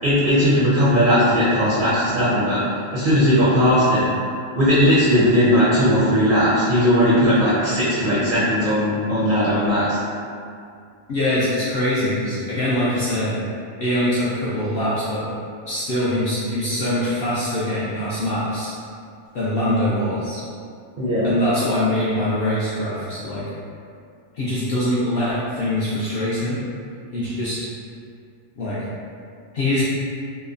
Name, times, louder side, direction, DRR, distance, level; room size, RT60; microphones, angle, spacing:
voice 1, 0.0-2.6 2.9-4.1 4.5-10.0 21.0-21.3, equal, 60° right, -9 dB, 0.5 m, -18 dB
voice 2, 11.1-13.3 13.8-15.2 15.6-18.7 19.3-20.4 21.2-23.4 24.3-26.6 27.1-27.6 28.6-28.8 29.5-29.8, left 1 dB, 75° left, -9 dB, 0.5 m, -23 dB
3.0 x 2.0 x 2.4 m, 2.3 s
omnidirectional pair, 1.5 m